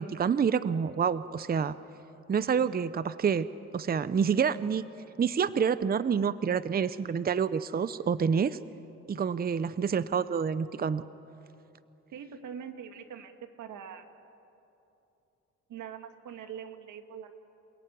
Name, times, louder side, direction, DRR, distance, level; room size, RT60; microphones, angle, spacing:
voice 1, 0.0-1.7 2.3-3.5 3.7-4.8 5.2-8.6 9.1-11.0, right 6 dB, 30° right, 15 dB, 0.7 m, -28 dB
voice 2, 12.1-13.3 13.6-14.1 15.7-17.3, right 8 dB, 75° right, 7 dB, 2.1 m, -43 dB
28.5 x 17.5 x 9.4 m, 2.9 s
cardioid pair, 90°, 30 cm